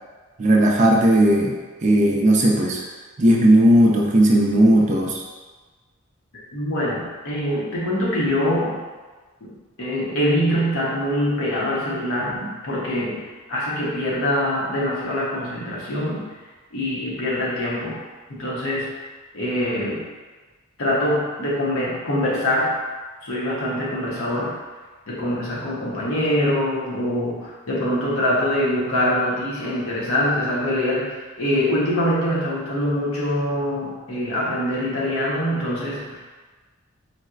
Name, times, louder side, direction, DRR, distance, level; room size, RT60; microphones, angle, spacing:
voice 1, 0.4-1.5 1.8-2.8 3.2-5.2, right 1 dB, 35° right, -1 dB, 0.4 m, -16 dB
voice 2, 6.5-8.8 9.4-16.3 16.7-18.0 18.3-18.9 19.3-20.1 20.8-22.8 23.2-24.6 25.1-36.2, left 1 dB, 80° left, -6 dB, 0.8 m, -24 dB
4.1 x 2.1 x 2.4 m, 1.3 s
head